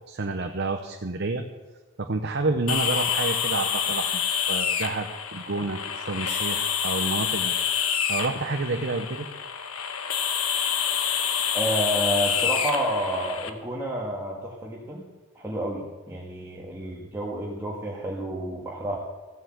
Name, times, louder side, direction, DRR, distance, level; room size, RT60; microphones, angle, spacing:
voice 1, 0.1-1.4 2.0-4.1 4.5-7.5 7.8-9.3, right 3 dB, 50° right, 4 dB, 0.8 m, -29 dB
sound 1, 2.7-13.5, left 8 dB, 85° left, 1.2 m, -27 dB
voice 2, 11.5-15.0 15.3-19.0, right 1 dB, 10° right, -3 dB, 1.6 m, -30 dB
15.0 x 8.0 x 7.8 m, 1.2 s
head